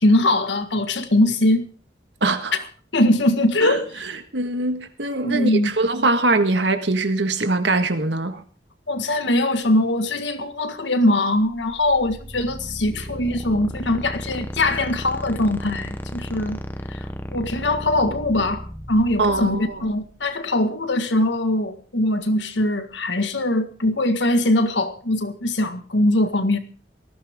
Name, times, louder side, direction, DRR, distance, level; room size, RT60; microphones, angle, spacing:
voice 1, 0.0-1.6 2.9-3.9 5.2-5.7 8.9-16.6 16.9-17.0 17.3-26.6, left 1 dB, 90° left, 1.8 m, -21 dB
voice 2, 2.2-2.5 3.6-3.8 4.3-8.4 19.2-19.8, right 2 dB, 85° right, 1.7 m, -22 dB
sound 1, 11.4-20.3, equal, 10° left, 0.9 m, -35 dB
19.0 x 14.5 x 3.7 m
head